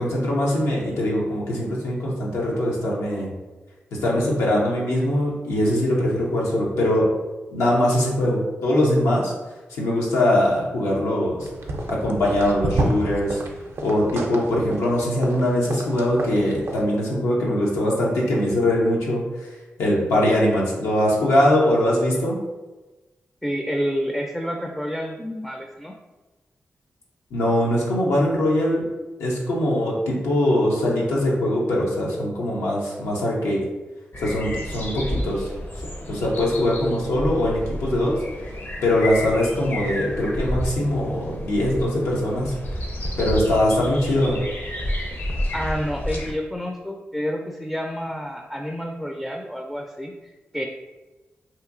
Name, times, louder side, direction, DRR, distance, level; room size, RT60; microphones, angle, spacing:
voice 1, 0.0-3.3 4.0-7.1 7.5-9.3 9.8-11.5 11.9-13.4 13.8-19.5 19.8-22.4 27.3-28.8 29.2-33.6 34.2-35.5 36.1-38.1 38.8-42.5 43.2-44.4, left 1 dB, 90° left, -4 dB, 0.6 m, -22 dB
sound 1, 11.4-16.8, right 2 dB, 65° right, 0.4 m, -30 dB
voice 2, 23.4-25.9 45.5-50.7, equal, 5° left, 1 dB, 0.3 m, -29 dB
sound 2, 34.1-46.3, equal, 50° left, 0.6 m, -31 dB
2.8 x 2.6 x 2.5 m, 1.1 s
supercardioid pair, 40°, 5 cm